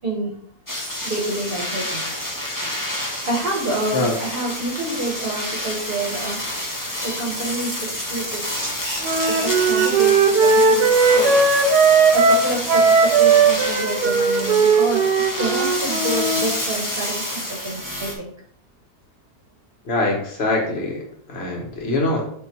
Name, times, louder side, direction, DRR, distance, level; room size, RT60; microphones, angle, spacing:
voice 1, 0.0-0.3 1.0-2.0 3.2-6.4 7.0-7.7 8.1-8.4 9.3-10.1 10.4-11.4 12.1-15.0 15.4-18.3, right 2 dB, 35° right, -1 dB, 1.5 m, -28 dB
sound 1, 0.7-18.1, left 1 dB, 15° left, 1.4 m, -28 dB
Wind instrument woodwind instrument, 9.0-16.4, right 4 dB, 90° right, 1.4 m, -17 dB
voice 2, 19.9-21.0 21.3-22.3, left 2 dB, 40° left, -1 dB, 1.8 m, -23 dB
6.4 x 4.2 x 4.5 m, 0.64 s
omnidirectional pair, 1.7 m